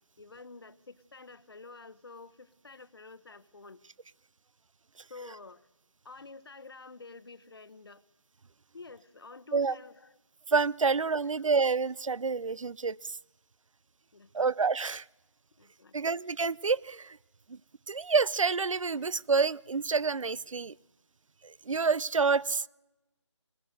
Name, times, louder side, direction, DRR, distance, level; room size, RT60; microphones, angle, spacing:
voice 1, 0.2-3.8 5.1-5.7 6.0-8.0 8.7-10.2 10.9-11.0 11.4-11.5 14.1-14.5 15.6-16.1, left 3 dB, 50° left, 16 dB, 0.9 m, -49 dB
voice 2, 10.5-13.2 14.3-15.0 15.9-17.2 17.5-17.6 17.9-20.7 21.4-22.7, right 4 dB, 90° right, 23 dB, 0.6 m, -28 dB
22.5 x 19.0 x 6.5 m, 1.0 s
figure-of-eight pair, 175°, 16 cm